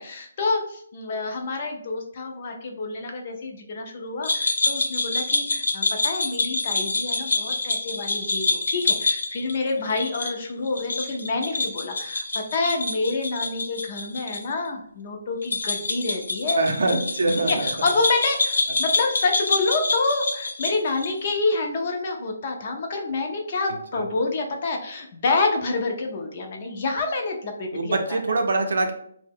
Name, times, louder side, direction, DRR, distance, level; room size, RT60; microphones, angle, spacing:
voice 1, 0.0-17.0 17.5-28.2, left 3 dB, 35° left, 2 dB, 0.4 m, -27 dB
sound 1, 4.2-14.4 14.7-14.8 15.4-21.2, left 3 dB, 85° left, 0.7 m, -26 dB
voice 2, 16.6-17.7 23.9-24.0 27.7-28.9, right 2 dB, 65° right, 5 dB, 0.5 m, -24 dB
2.6 x 2.0 x 3.5 m, 0.66 s
hypercardioid pair, 175°, 0 cm